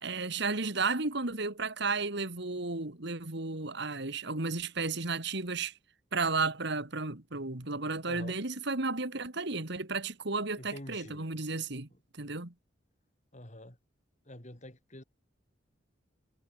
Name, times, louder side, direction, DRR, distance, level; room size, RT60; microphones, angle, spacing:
voice 1, 0.0-5.7 6.1-11.9 12.1-12.5, right 3 dB, 60° right, 2.4 m, -33 dB
voice 2, 8.0-8.4 10.6-11.3 11.9-12.0 13.3-13.8 14.2-15.0, left 1 dB, 35° left, 4.3 m, -47 dB
head